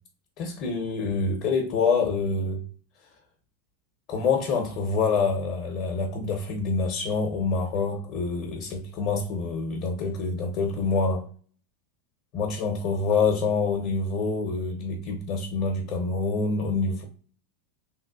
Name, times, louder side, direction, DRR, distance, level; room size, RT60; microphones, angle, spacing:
voice 1, 0.4-2.6 4.1-11.3 12.3-17.0, left 4 dB, 45° left, 0.8 m, -26 dB
3.3 x 2.4 x 2.3 m
hypercardioid pair, 90°, 0 cm